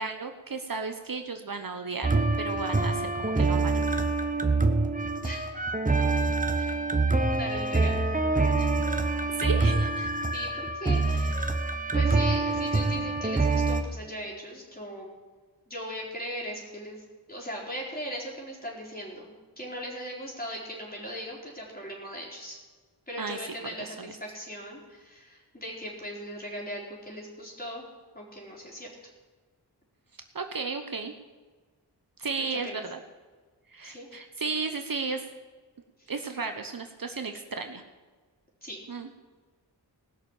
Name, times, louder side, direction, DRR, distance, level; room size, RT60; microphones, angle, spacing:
voice 1, 0.0-3.9 9.3-10.1 23.2-23.4 23.8-24.1 30.3-31.1 32.2-33.0 33.7-35.2 36.1-37.8 38.9-39.1, right 4 dB, 50° right, 6 dB, 1.0 m, -34 dB
sound 1, 2.0-13.8, right 3 dB, 20° right, 0.9 m, -26 dB
voice 2, 7.3-8.1 8.6-8.7 10.3-11.5 11.9-15.1 15.7-22.6 23.1-27.8 28.1-29.1 32.6-32.8 33.8-34.1 36.0-36.1 38.6-38.8, equal, 20° left, -3 dB, 4.3 m, -39 dB
19.0 x 6.5 x 7.2 m, 1.4 s
wide cardioid pair, 85°, 42 cm